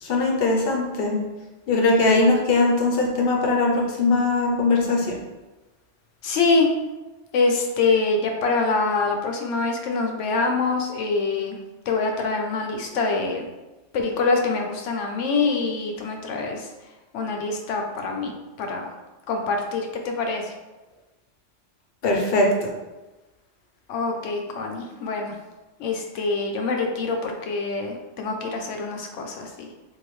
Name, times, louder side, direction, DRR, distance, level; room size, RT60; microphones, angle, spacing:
voice 1, 0.0-1.2 1.7-5.2 22.0-22.7, left 2 dB, 60° left, 0 dB, 0.8 m, -20 dB
voice 2, 6.2-6.7 7.3-11.6 11.9-13.4 13.9-16.7 17.1-18.3 18.6-18.9 19.3-20.5 23.9-25.3 25.8-29.7, left 3 dB, 80° left, 2 dB, 0.9 m, -25 dB
3.6 x 2.6 x 3.1 m, 1.1 s
omnidirectional pair, 1.3 m